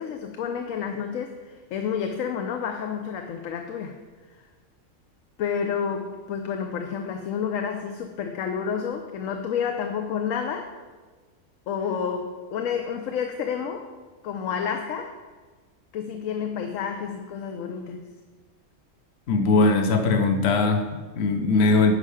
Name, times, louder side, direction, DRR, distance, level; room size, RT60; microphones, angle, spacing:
voice 1, 0.0-4.0 4.4-4.5 5.4-10.7 11.7-13.9 14.2-15.2 15.9-18.1, left 7 dB, 80° left, 5 dB, 1.0 m, -30 dB
voice 2, 19.3-21.9, left 3 dB, 60° left, 6 dB, 1.0 m, -20 dB
9.9 x 5.6 x 4.9 m, 1.4 s
omnidirectional pair, 1.3 m